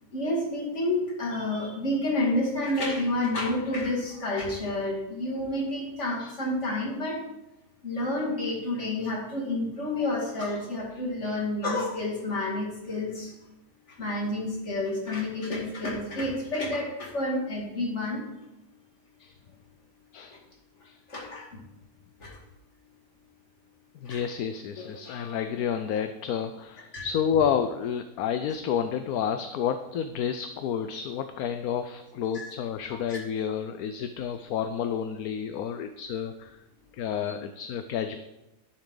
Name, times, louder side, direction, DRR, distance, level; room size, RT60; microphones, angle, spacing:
voice 1, 0.1-7.2 7.8-13.3 14.0-18.3 21.1-21.6 22.2-22.3 24.1-24.2 24.8-24.9 26.9-27.0 32.3-32.5 33.1-33.2, left 1 dB, 45° left, -2 dB, 2.6 m, -29 dB
voice 2, 10.9-11.4 19.2-19.3 20.1-20.4 20.8-21.0 21.2-21.4 24.0-36.6 36.9-38.2, left 8 dB, 70° left, 9 dB, 1.1 m, -30 dB
10.5 x 10.5 x 3.9 m, 0.94 s
omnidirectional pair, 1.7 m